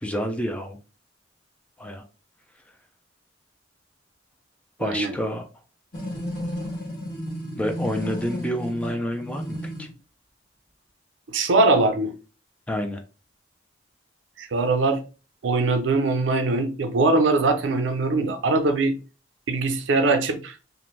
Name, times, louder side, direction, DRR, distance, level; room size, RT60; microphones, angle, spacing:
voice 1, 0.0-0.8 1.8-2.0 4.8-5.5 7.6-9.9 12.7-13.0, equal, 5° left, 0.3 m, -28 dB
voice 2, 4.8-5.2 11.3-12.1 14.4-15.0 15.4-18.9 19.5-20.5, right 3 dB, 85° right, 0.5 m, -22 dB
sound 1, 5.9-9.9, equal, 50° left, 1.0 m, -33 dB
2.4 x 2.1 x 3.1 m
head